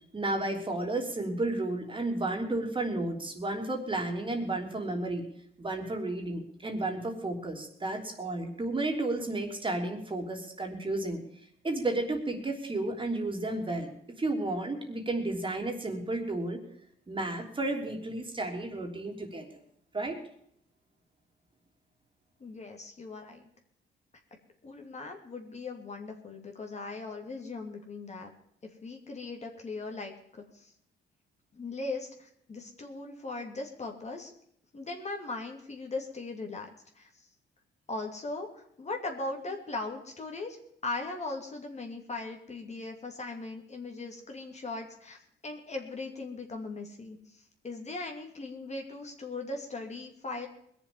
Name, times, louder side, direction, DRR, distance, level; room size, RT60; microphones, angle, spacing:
voice 1, 0.1-5.2 5.6-11.2 11.6-13.9 14.2-16.6 17.1-19.4 19.9-20.2, right 2 dB, 25° right, 2 dB, 3.2 m, -32 dB
voice 2, 22.4-23.5 24.6-28.3 28.8-30.7 31.5-34.3 34.7-36.7 36.9-37.3 37.9-40.6 40.8-50.5, left 3 dB, 35° left, 3 dB, 2.6 m, -39 dB
21.0 x 7.1 x 7.1 m, 0.69 s
cardioid pair, 90°, 20 cm